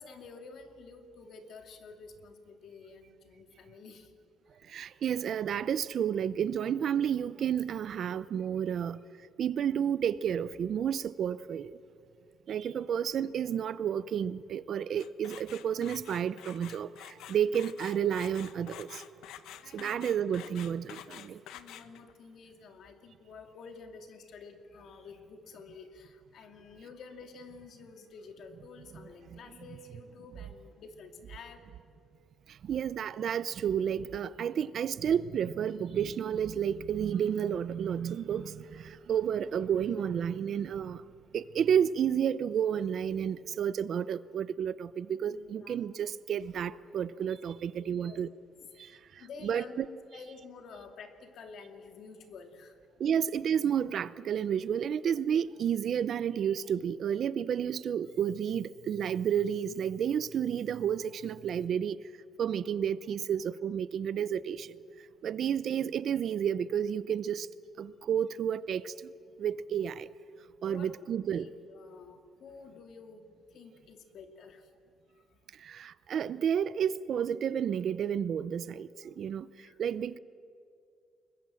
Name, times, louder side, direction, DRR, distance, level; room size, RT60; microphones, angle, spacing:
voice 1, 0.0-4.1 19.6-20.2 21.1-31.6 39.1-39.3 45.3-45.9 47.8-48.2 48.9-52.8 65.3-65.6 70.6-70.9 71.3-74.7 75.1-75.2 79.6-79.8, left 4 dB, 50° left, 2.4 m, -50 dB
voice 2, 4.7-9.0 9.4-11.7 12.5-16.9 17.3-19.0 19.7-21.4 29.3-29.4 32.6-41.0 41.3-48.3 49.4-49.9 53.0-62.0 62.4-64.7 65.2-67.5 67.8-68.9 69.4-70.1 70.6-71.5 75.6-79.5 79.8-80.2, right 8 dB, 45° right, 0.5 m, -31 dB
sound 1, 15.0-22.1, left 11 dB, 80° left, 1.1 m, -48 dB
29.5 x 21.5 x 7.7 m
cardioid pair, 160°, 0 cm